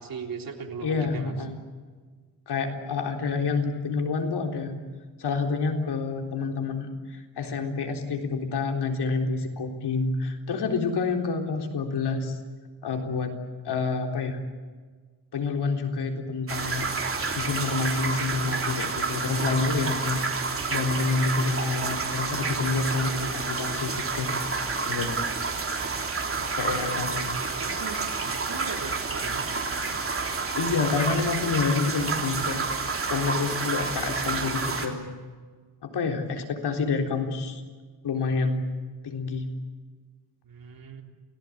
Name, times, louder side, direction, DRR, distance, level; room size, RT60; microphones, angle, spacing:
voice 1, 0.0-1.4 25.8-26.6 27.2-28.0 28.3-29.5 40.4-41.0, right 6 dB, 55° right, 3 dB, 3.6 m, -39 dB
voice 2, 0.8-1.6 2.5-4.7 5.2-12.4 12.8-13.3 13.6-14.4 15.3-16.9 17.3-20.2 20.7-24.3 24.9-25.2 26.6-27.2 30.5-35.0 35.8-37.6 38.0-38.7 39.0-39.5, left 4 dB, 70° left, 3 dB, 3.9 m, -28 dB
sound 1, 16.5-34.9, right 4 dB, 30° right, 3.4 m, -29 dB
29.0 x 18.5 x 8.7 m, 1.5 s
wide cardioid pair, 145°, 42 cm